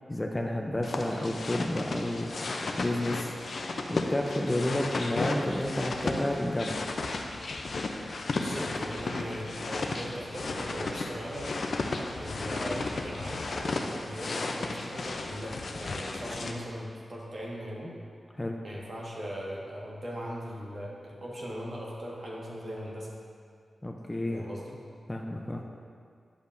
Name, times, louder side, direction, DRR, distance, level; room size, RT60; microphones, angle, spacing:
voice 1, 0.1-2.3 2.8-3.3 3.9-6.8 18.4-18.6 23.8-24.4 25.1-25.6, left 1 dB, 20° left, 2 dB, 0.6 m, -30 dB
sound 1, 0.8-16.5, left 3 dB, 65° left, 0.5 m, -34 dB
voice 2, 8.3-11.5 12.2-17.9 18.6-23.1 24.3-24.7, equal, 55° right, -4 dB, 1.6 m, -39 dB
10.0 x 5.1 x 2.6 m, 2.2 s
cardioid pair, 55°, 0 cm